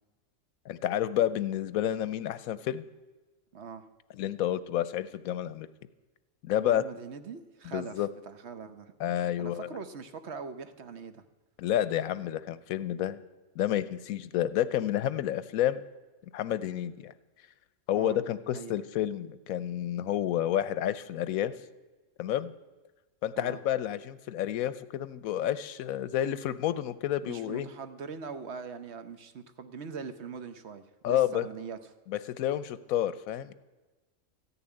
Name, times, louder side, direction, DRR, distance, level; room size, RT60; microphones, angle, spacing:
voice 1, 0.7-2.9 4.2-5.7 6.4-6.9 7.7-8.1 9.0-9.7 11.6-13.2 13.6-15.8 16.3-17.1 17.9-21.5 22.2-22.5 23.2-27.7 31.0-31.5 32.1-33.5, left 11 dB, 85° left, 15 dB, 1.1 m, -30 dB
voice 2, 3.5-3.9 6.7-8.9 9.4-11.2 17.9-18.2 18.5-18.7 23.4-23.6 27.2-31.8, right 5 dB, 55° right, 9 dB, 1.1 m, -42 dB
14.5 x 7.0 x 9.8 m, 1.2 s
omnidirectional pair, 1.4 m